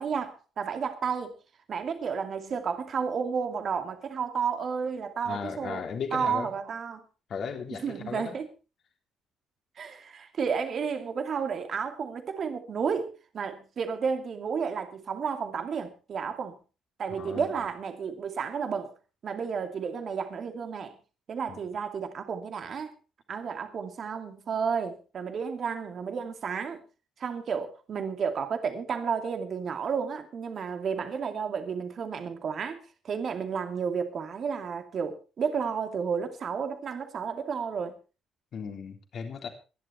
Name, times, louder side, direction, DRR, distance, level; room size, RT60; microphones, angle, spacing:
voice 1, 0.0-1.3 1.7-5.8 6.1-7.0 7.7-8.5 9.8-16.6 17.0-18.9 19.2-20.9 21.3-22.9 23.3-26.8 27.2-37.9, right 6 dB, 50° right, 2.5 m, -32 dB
voice 2, 5.2-6.5 7.3-8.4 17.2-17.5 21.5-21.7 38.5-39.5, left 6 dB, 55° left, 3.2 m, -36 dB
23.0 x 11.0 x 3.4 m
hypercardioid pair, 45°, 0 cm